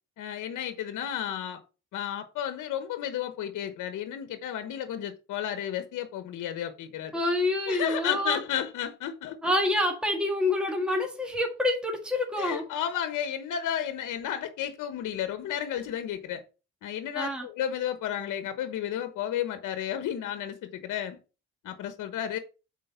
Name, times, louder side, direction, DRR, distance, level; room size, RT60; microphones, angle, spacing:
voice 1, 0.2-1.6 1.9-7.2 7.7-9.5 12.4-16.4 16.8-21.2 21.6-22.4, left 10 dB, 80° left, 1.2 m, -32 dB
voice 2, 7.1-8.4 9.4-12.7 17.2-17.5, left 1 dB, 5° right, 2.0 m, -27 dB
7.6 x 4.6 x 5.8 m
cardioid pair, 90°, 30 cm